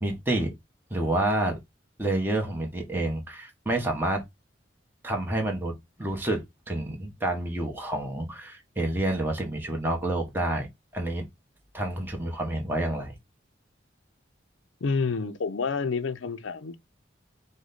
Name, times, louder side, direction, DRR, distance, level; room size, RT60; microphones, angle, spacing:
voice 1, 0.0-0.5 0.9-1.6 2.0-4.2 5.0-5.7 6.0-10.7 10.9-11.2 11.7-13.2, right 1 dB, 10° right, 1.0 m, -28 dB
voice 2, 14.8-16.8, left 4 dB, 85° left, 0.5 m, -28 dB
5.0 x 2.2 x 3.9 m
head